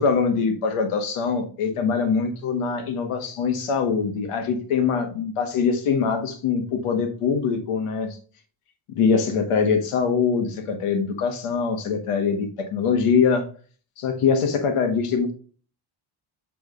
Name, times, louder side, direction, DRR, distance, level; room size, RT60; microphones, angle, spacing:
voice 1, 0.0-8.2 8.9-13.4 14.0-15.3, left 5 dB, 85° left, 5 dB, 1.7 m, -23 dB
8.2 x 4.0 x 3.8 m, 0.41 s
cardioid pair, 105°, 50 cm